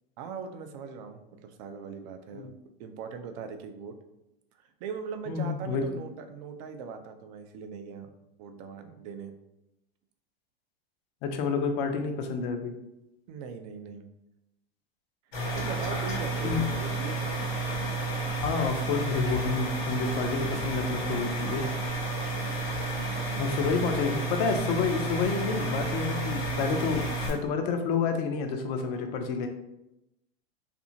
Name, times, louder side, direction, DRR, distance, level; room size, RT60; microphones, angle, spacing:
voice 1, 0.2-2.5 2.8-3.9 4.8-8.1 8.4-9.3 13.3-14.0 15.5-17.5 22.9-23.9, right 6 dB, 40° right, 7 dB, 0.4 m, -40 dB
voice 2, 5.3-5.8 11.2-12.7 16.4-16.6 18.3-21.6 23.4-29.5, left 5 dB, 40° left, 6 dB, 0.5 m, -29 dB
sound 1, 15.3-27.3, right 2 dB, 80° left, 1.1 m, -31 dB
2.7 x 2.5 x 2.7 m, 0.89 s
hypercardioid pair, 100°, 31 cm